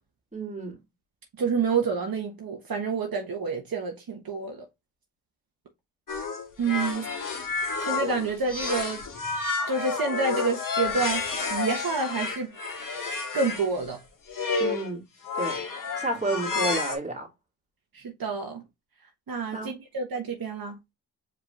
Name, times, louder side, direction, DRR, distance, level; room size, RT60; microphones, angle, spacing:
voice 1, 0.3-0.8 6.9-7.1 14.6-15.0 15.4-15.6 16.0-17.3 19.5-19.7, right 2 dB, 15° right, 2.3 m, -31 dB
voice 2, 1.4-4.6 6.6-7.1 7.8-9.0 9.7-12.5 13.3-14.0 17.9-18.6 19.3-20.8, right 4 dB, 55° right, 1.2 m, -28 dB
sound 1, 6.1-13.7 14.3-14.9 15.2-17.0, left 4 dB, 50° left, 1.7 m, -30 dB
4.9 x 3.7 x 2.4 m
supercardioid pair, 50°, 42 cm